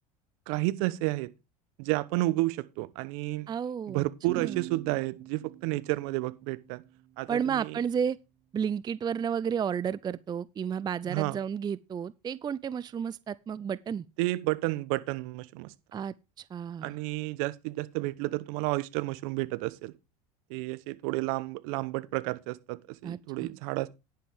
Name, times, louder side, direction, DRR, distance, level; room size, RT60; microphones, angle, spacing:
voice 1, 0.5-1.3 1.8-3.5 3.9-6.8 7.2-7.8 11.1-11.4 14.2-15.7 16.8-19.9 20.5-23.9, right 20 dB, 65° right, 1.0 m, -31 dB
voice 2, 3.5-4.0 4.4-4.6 7.3-8.2 8.5-14.0 15.9-17.0 23.0-23.5, right 7 dB, 20° right, 0.5 m, -32 dB
sound 1, 4.3-7.7, right 15 dB, 45° right, 1.1 m, -44 dB
10.5 x 10.5 x 3.6 m
hypercardioid pair, 90°, 19 cm